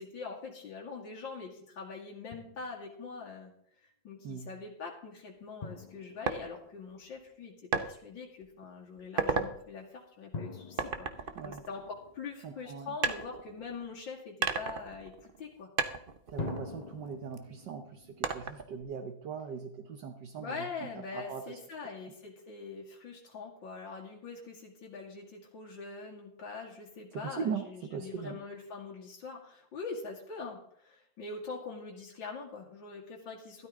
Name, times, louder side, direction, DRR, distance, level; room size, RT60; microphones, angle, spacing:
voice 1, 0.0-3.5 3.8-11.1 11.4-15.7 20.4-33.7, left 4 dB, 75° left, -3 dB, 3.0 m, -43 dB
Drum, 2.3-3.1 5.6-7.4 10.3-12.8 16.4-19.5, left 4 dB, 50° left, 0.5 m, -46 dB
sound 1, 6.3-6.4 7.7-7.9 8.4-8.6 9.0-9.5 10.8-12.3 13.0-13.9 14.4-15.5 15.8-17.4 18.2-18.8, right 5 dB, 40° right, 0.8 m, -34 dB
voice 2, 12.4-12.9 16.3-20.6 21.1-21.4 27.2-28.4, right 6 dB, 70° right, 7 dB, 1.6 m, -39 dB
13.0 x 12.5 x 3.7 m, 0.69 s
omnidirectional pair, 2.0 m